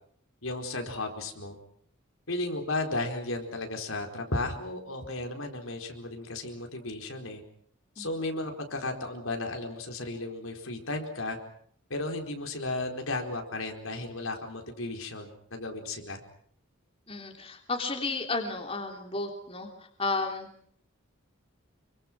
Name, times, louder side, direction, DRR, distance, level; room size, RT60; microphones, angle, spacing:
voice 1, 0.4-1.6 2.3-7.4 8.0-11.4 11.9-16.2, left 2 dB, 80° left, 3 dB, 4.6 m, -34 dB
voice 2, 17.1-19.7 20.0-20.5, left 3 dB, 25° left, 3 dB, 3.2 m, -32 dB
27.5 x 24.5 x 6.2 m, 0.64 s
head